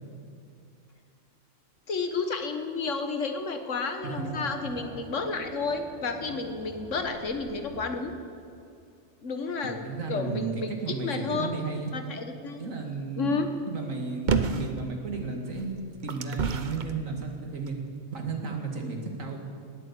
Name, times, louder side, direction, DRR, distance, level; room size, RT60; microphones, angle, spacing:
voice 1, 1.9-8.2 9.2-11.6 11.9-12.7 13.2-13.5, left 4 dB, 65° left, 7 dB, 1.6 m, -31 dB
Race car auto racing / Accelerating revving vroom, 4.0-8.7, right 1 dB, 5° right, 3.0 m, -45 dB
voice 2, 4.0-4.4 9.8-11.9 12.6-13.4 13.7-15.7 16.0-17.8 18.1-19.4, right 4 dB, 75° right, 2 dB, 2.5 m, -33 dB
sound 1, 14.3-14.8 15.5-16.9 17.7-17.8, right 5 dB, 45° right, 0.8 m, -28 dB
19.0 x 8.8 x 8.4 m, 2.5 s
omnidirectional pair, 1.4 m